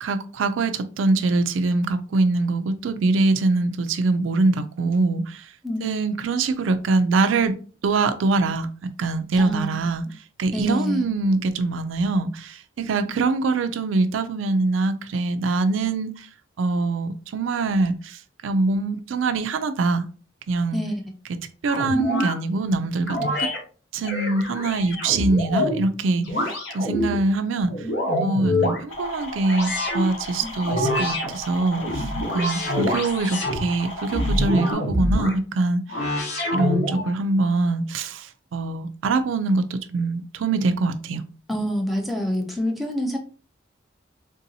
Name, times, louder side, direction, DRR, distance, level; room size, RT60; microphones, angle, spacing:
voice 1, 0.0-5.5 5.8-7.6 7.8-10.0 10.4-16.3 16.6-20.0 20.5-20.8 21.6-23.5 23.9-27.9 28.2-36.0 36.5-41.2, right 3 dB, 85° right, 0.4 m, -23 dB
voice 2, 9.4-9.9 10.5-11.1 20.7-21.0 30.4-30.5 41.5-43.2, equal, ahead, 0.5 m, -26 dB
sound 1, 21.7-22.4 23.1-23.6 24.0-25.8 26.3-27.2 27.6-28.8 29.5-30.1 30.6-31.3 31.7-33.6 34.1-35.3 35.9-37.1, left 1 dB, 60° left, 1.0 m, -25 dB
sound 2, 28.9-34.7, equal, 85° left, 1.0 m, -34 dB
3.7 x 2.6 x 2.7 m
head